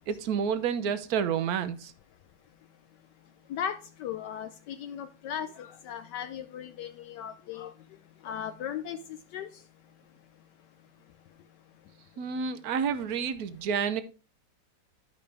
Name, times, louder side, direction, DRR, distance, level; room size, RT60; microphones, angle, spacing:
voice 1, 0.1-1.9 12.2-14.0, right 7 dB, 65° right, 1.0 m, -29 dB
voice 2, 3.5-7.7 8.2-9.0 9.3-9.5, left 9 dB, 75° left, 1.1 m, -37 dB
11.5 x 5.2 x 3.3 m
omnidirectional pair, 2.0 m